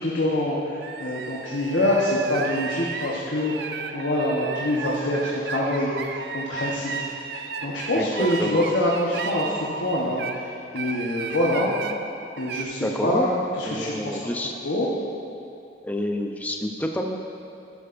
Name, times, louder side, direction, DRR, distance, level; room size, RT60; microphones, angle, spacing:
voice 1, 0.0-11.7 12.4-14.2 14.6-14.9, left 1 dB, 90° left, -6 dB, 1.2 m, -25 dB
sound 1, 0.8-10.4 10.8-12.0 12.4-12.6, right 5 dB, 60° right, 0.5 m, -34 dB
voice 2, 7.9-8.7 12.8-13.3 13.6-14.5 15.8-17.2, left 1 dB, 10° left, 2 dB, 0.6 m, -28 dB
11.0 x 11.0 x 2.6 m, 2.6 s
head